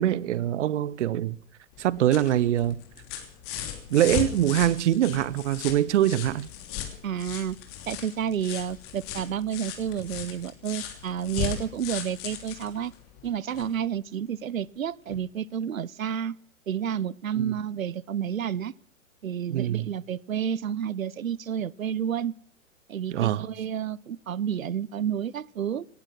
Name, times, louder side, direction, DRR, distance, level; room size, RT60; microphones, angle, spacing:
voice 1, 0.0-1.4 1.8-2.8 3.9-6.5 17.4-17.5 19.5-19.9 23.1-23.5, right 12 dB, 60° right, 0.8 m, -24 dB
sound 1, 1.7-13.8 15.1-15.2, left 10 dB, 35° left, 3.2 m, -37 dB
voice 2, 7.0-7.6 7.9-12.9 13.2-16.4 16.7-18.7 19.2-22.4 22.9-25.9, right 9 dB, 90° right, 0.6 m, -30 dB
18.5 x 11.0 x 6.2 m
hypercardioid pair, 120°, 40 cm